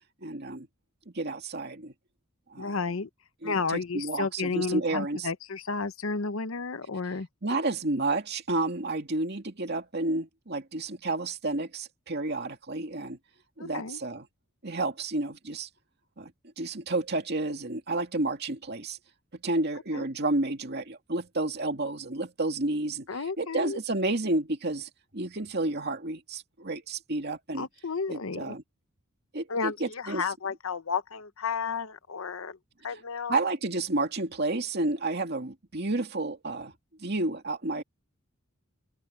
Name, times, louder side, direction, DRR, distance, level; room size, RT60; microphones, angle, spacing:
voice 1, 0.2-0.7 1.1-1.9 2.5-2.8 3.4-5.3 7.4-13.2 13.6-14.3 14.6-15.7 16.2-16.3 16.6-19.0 19.4-27.7 28.1-28.6 29.3-30.2 33.3-36.7 37.0-37.8, right 2 dB, 50° right, 2.4 m, -31 dB
voice 2, 2.6-3.1 3.4-7.3 13.6-14.0 19.9-20.1 23.1-23.8 27.6-28.6 29.5-32.6 32.8-33.4, left 4 dB, 75° left, 0.9 m, -32 dB
open air
head